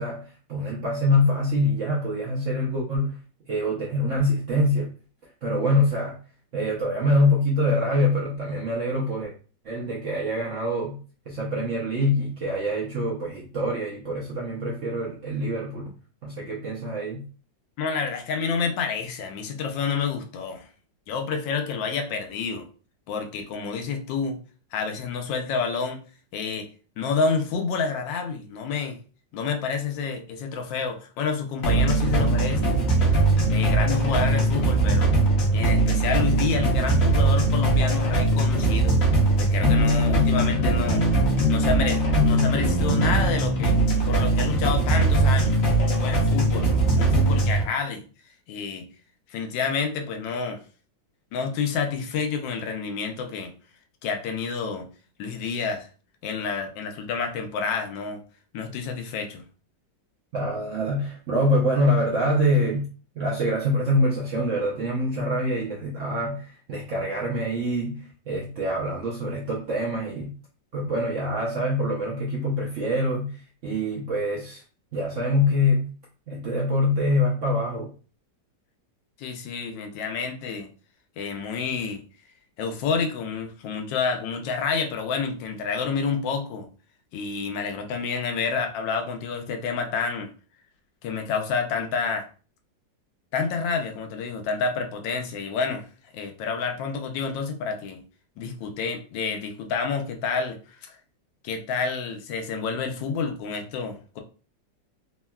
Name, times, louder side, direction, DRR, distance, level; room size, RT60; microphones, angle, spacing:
voice 1, 0.0-3.2 3.5-4.9 5.4-6.2 6.5-9.3 9.6-11.0 11.3-15.9 16.2-17.2 60.3-62.9 63.2-70.3 70.7-74.6 74.9-75.9 76.3-77.9, left 1 dB, 70° right, -3 dB, 0.7 m, -25 dB
voice 2, 17.8-20.7 21.1-22.7 23.1-24.4 24.7-26.0 26.3-26.7 27.0-29.0 29.3-32.8 33.5-35.1 35.5-39.0 39.4-41.0 41.5-43.8 44.1-46.7 47.0-48.0 48.5-48.9 49.3-50.6 51.3-53.5 54.0-54.9 55.2-55.9 56.2-58.2 58.5-59.4 79.2-80.7 81.2-82.0 82.6-86.7 87.1-90.3 91.0-92.3 93.3-95.8 96.1-98.0 98.4-101.0 101.4-104.2, left 5 dB, 85° left, 5 dB, 1.3 m, -29 dB
sound 1, 31.6-47.6, right 2 dB, 60° left, 0.9 m, -21 dB
3.5 x 2.2 x 2.2 m, 0.37 s
omnidirectional pair, 2.0 m